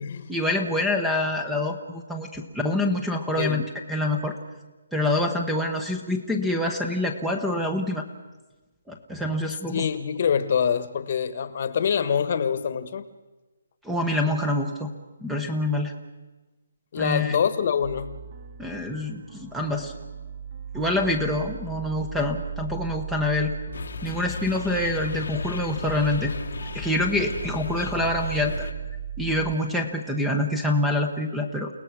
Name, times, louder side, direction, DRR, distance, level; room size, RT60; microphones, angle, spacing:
voice 1, 0.3-3.6 3.9-4.3 4.9-8.1 8.9-9.8 13.8-14.9 15.2-15.9 17.0-17.4 18.6-19.9 20.7-23.5 24.0-26.3 26.7-28.7 29.2-31.7, left 1 dB, ahead, 4 dB, 1.0 m, -26 dB
voice 2, 9.7-13.1 16.9-18.2, left 7 dB, 40° left, 12 dB, 1.4 m, -25 dB
sound 1, 17.8-29.5, right 7 dB, 40° right, 1.8 m, -38 dB
sound 2, 23.7-28.7, left 4 dB, 70° left, 1.3 m, -35 dB
30.0 x 18.0 x 6.3 m, 1.2 s
hypercardioid pair, 170°, 0 cm